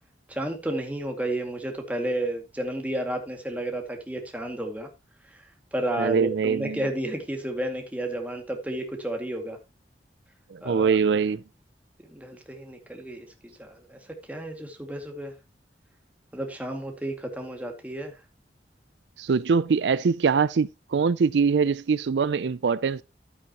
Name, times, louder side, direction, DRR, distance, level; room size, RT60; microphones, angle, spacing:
voice 1, 0.3-4.9 5.3-5.4 5.7-9.6 10.6-11.0 12.1-15.3 16.3-18.1, right 1 dB, 10° right, 2.2 m, -32 dB
voice 2, 6.0-6.8 10.5-11.4 19.2-23.0, right 5 dB, 75° right, 0.4 m, -23 dB
12.5 x 8.5 x 3.0 m
head